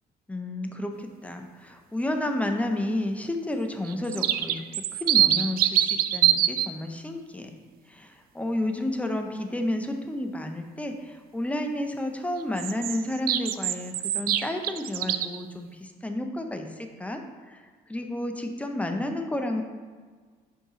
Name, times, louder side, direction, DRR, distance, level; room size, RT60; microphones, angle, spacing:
voice 1, 0.3-7.5 7.9-17.2 17.5-17.6 17.9-19.6, left 1 dB, 10° left, 5 dB, 0.6 m, -31 dB
sound 1, 3.8-6.7 12.6-15.4, right 12 dB, 60° right, 0.4 m, -24 dB
5.3 x 4.6 x 5.0 m, 1.5 s
cardioid pair, 110°, 17 cm